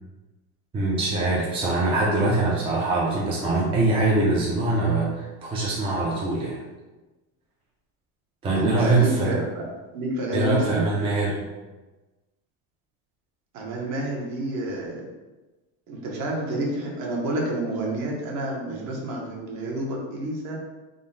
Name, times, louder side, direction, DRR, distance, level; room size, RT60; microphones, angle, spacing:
voice 1, 0.7-6.6 8.4-9.3 10.3-11.4, right 2 dB, 15° right, -5 dB, 0.4 m, -23 dB
voice 2, 8.5-10.9 13.5-15.1 15.9-20.6, right 1 dB, 50° right, -1 dB, 0.9 m, -29 dB
3.7 x 2.1 x 3.8 m, 1.2 s
cardioid pair, 150°, 38 cm